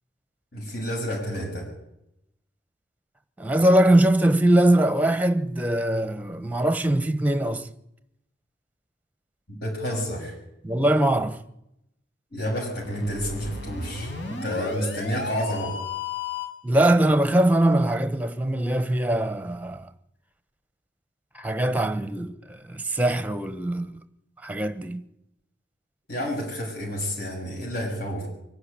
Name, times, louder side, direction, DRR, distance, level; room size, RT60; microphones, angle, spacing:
voice 1, 0.5-1.7 9.6-10.3 12.3-15.8 26.1-28.3, equal, 55° left, 6.9 m, -30 dB
voice 2, 3.4-7.7 10.6-11.4 16.6-19.9 21.3-24.0 24.4-25.0, right 1 dB, 10° right, 1.0 m, -22 dB
sound 1, 12.7-16.7, left 4 dB, 80° left, 4.8 m, -34 dB
23.5 x 11.5 x 10.0 m
head